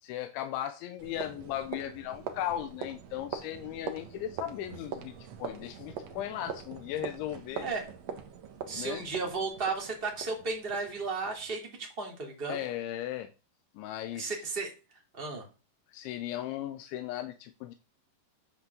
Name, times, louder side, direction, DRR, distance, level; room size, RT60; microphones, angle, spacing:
voice 1, 0.0-5.1 5.4-7.7 8.8-9.0 12.5-13.3 13.8-14.3 15.9-17.8, left 12 dB, 90° left, 8 dB, 3.3 m, -37 dB
sound 1, 1.0-11.6, right 7 dB, 80° right, 1.5 m, -43 dB
voice 2, 8.7-12.6 14.1-14.7 15.1-15.5, right 4 dB, 15° right, 1 dB, 2.3 m, -34 dB
10.0 x 6.1 x 6.9 m, 0.32 s
omnidirectional pair, 5.2 m